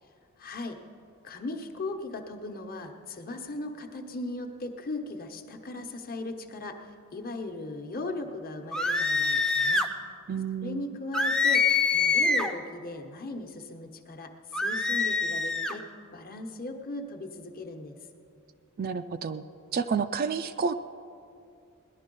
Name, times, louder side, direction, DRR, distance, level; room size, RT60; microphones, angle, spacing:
voice 1, 0.4-0.8 1.2-6.8 7.1-9.8 10.6-17.9, left 2 dB, 45° left, 5 dB, 1.1 m, -38 dB
sound 1, 8.7-9.9 11.1-12.6 14.5-15.8, left 4 dB, 5° left, 0.6 m, -25 dB
voice 2, 10.3-10.9 18.8-19.4 19.7-20.7, right 6 dB, 45° right, 9 dB, 0.4 m, -30 dB
18.0 x 11.5 x 5.4 m, 2.6 s
head